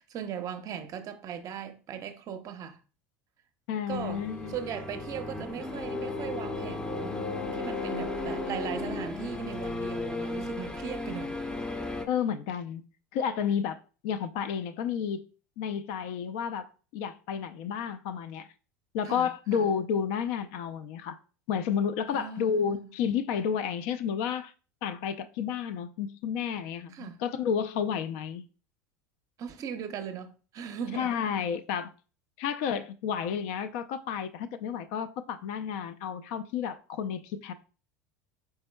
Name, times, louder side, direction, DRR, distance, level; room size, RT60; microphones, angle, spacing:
voice 1, 0.0-2.8 3.9-11.4 19.0-19.7 22.1-22.9 26.9-27.2 29.4-31.2, right 8 dB, 40° right, 0.6 m, -39 dB
voice 2, 3.7-4.6 12.1-12.8 13.1-15.2 15.6-18.5 18.9-21.2 21.5-24.5 24.8-28.5 30.9-31.9 32.4-37.5, left 7 dB, 65° left, 0.4 m, -31 dB
sound 1, 3.9-12.0, left 2 dB, 10° left, 0.6 m, -35 dB
4.5 x 4.2 x 2.2 m
hypercardioid pair, 85°, 9 cm